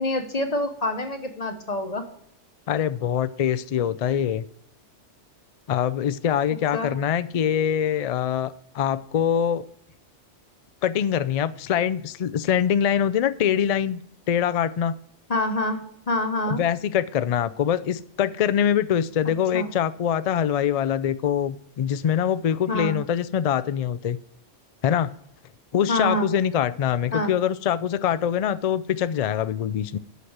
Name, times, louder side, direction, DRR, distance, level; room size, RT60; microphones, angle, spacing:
voice 1, 0.0-2.1 6.7-6.9 15.3-16.6 19.5-19.7 22.7-23.0 25.9-26.3 27.1-27.3, left 1 dB, 35° left, 6 dB, 1.0 m, -26 dB
voice 2, 2.7-4.4 5.7-9.6 10.8-14.0 14.3-15.0 16.5-24.2 24.8-25.1 25.7-30.0, left 9 dB, 70° left, 14 dB, 0.3 m, -24 dB
8.2 x 5.8 x 7.9 m, 0.68 s
omnidirectional pair, 1.2 m